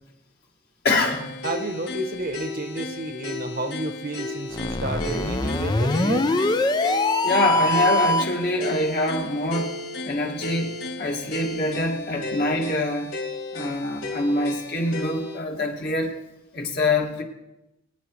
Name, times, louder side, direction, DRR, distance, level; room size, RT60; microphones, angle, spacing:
voice 1, 0.8-1.3 7.2-9.8 10.0-13.2 13.5-16.1 16.5-17.2, left 2 dB, 50° left, 0 dB, 2.1 m, -25 dB
sound 1, 1.0-15.4, left 1 dB, 75° left, 2.9 m, -34 dB
voice 2, 1.4-6.3, right 2 dB, 45° right, 8 dB, 0.9 m, -31 dB
sound 2, 4.5-8.4, left 2 dB, 20° left, 0.4 m, -23 dB
23.5 x 9.4 x 3.2 m, 0.92 s
head